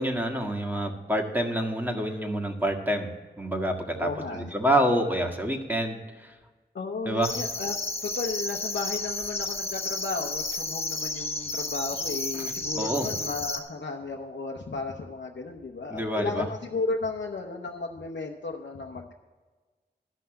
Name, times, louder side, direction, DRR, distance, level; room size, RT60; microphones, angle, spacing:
voice 1, 0.0-3.1 3.4-6.3 7.1-7.3 12.3-13.1 15.9-16.5, right 1 dB, 10° right, 2 dB, 1.7 m, -27 dB
voice 2, 4.0-4.5 6.7-7.8 8.0-19.1, left 3 dB, 85° left, 0 dB, 0.8 m, -34 dB
sound 1, 7.2-13.6, left 2 dB, 30° left, 1.4 m, -32 dB
12.5 x 5.7 x 7.6 m, 1.3 s
wide cardioid pair, 50°, 18 cm